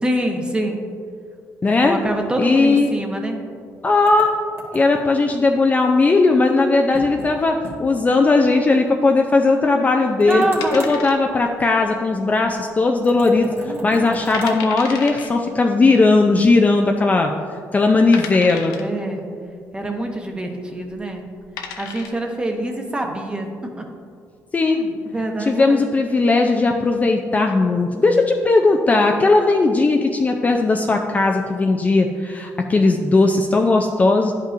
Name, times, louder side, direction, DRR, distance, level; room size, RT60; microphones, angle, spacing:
voice 1, 0.0-0.9 1.8-3.4 10.3-10.9 13.6-13.9 18.7-19.3 19.7-21.3 21.8-23.8 24.7-25.9, right 1 dB, 15° right, 2 dB, 0.9 m, -25 dB
voice 2, 1.6-2.0 2.4-2.9 3.8-4.3 4.7-10.5 10.7-17.3 17.7-18.8 24.5-24.8 25.4-34.3, left 3 dB, 25° left, 3 dB, 0.4 m, -17 dB
sound 1, 4.1-5.1 6.9-7.3 7.6-7.8 8.1-8.2 10.2-11.0 13.0-14.6, right 2 dB, 40° right, 1.4 m, -37 dB
sound 2, 10.6-11.6 11.8-11.9 12.5-13.0 13.3-13.4 14.0-14.1 14.3-15.3 16.4-16.5 17.2-17.3 18.1-19.0 20.8-21.0 21.4-22.2, left 6 dB, 85° left, 0.6 m, -33 dB
10.0 x 5.4 x 2.5 m, 2.2 s
cardioid pair, 85°, 6 cm